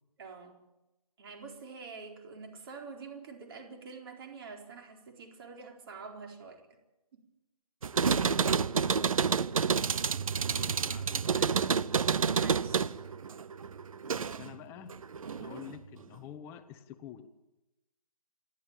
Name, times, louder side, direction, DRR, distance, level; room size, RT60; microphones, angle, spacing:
voice 1, 0.2-0.6 1.2-6.7 7.1-7.2 12.2-13.0 15.3-15.7, right 4 dB, 40° right, 4 dB, 4.2 m, -47 dB
sound 1, 7.8-14.5 14.9-15.7, right 6 dB, 60° right, 0.8 m, -29 dB
voice 2, 10.3-11.8 14.1-15.0 15.4-17.3, left 10 dB, 10° left, 9 dB, 1.0 m, -49 dB
28.5 x 12.5 x 8.9 m, 0.99 s
figure-of-eight pair, 155°, 20 cm